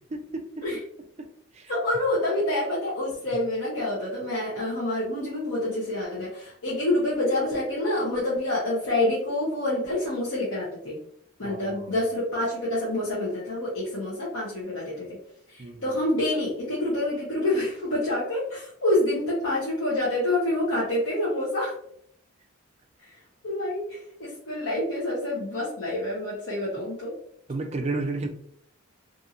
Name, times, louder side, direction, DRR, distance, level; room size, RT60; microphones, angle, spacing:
voice 1, 0.1-0.6 1.5-1.7 11.4-11.9 15.6-15.9 27.5-28.3, right 3 dB, 30° right, 5 dB, 0.3 m, -32 dB
voice 2, 1.7-11.0 11.4-15.1 15.5-21.8 23.1-23.2 23.4-27.1, left 1 dB, 65° left, -8 dB, 0.9 m, -27 dB
2.6 x 2.5 x 2.8 m, 0.67 s
head